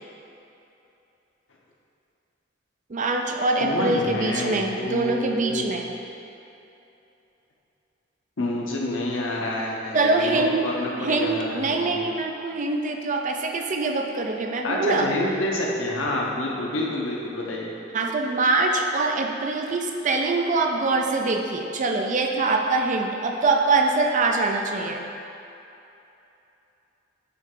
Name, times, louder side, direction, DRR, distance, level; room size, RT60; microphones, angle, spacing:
voice 1, 2.9-5.9 9.9-10.6 11.0-15.1 17.9-25.0, right 3 dB, 40° right, 3 dB, 0.5 m, -24 dB
voice 2, 3.6-5.6 8.4-12.0 14.6-17.7, left 1 dB, 90° left, -2 dB, 0.9 m, -28 dB
8.3 x 3.2 x 3.8 m, 2.8 s
head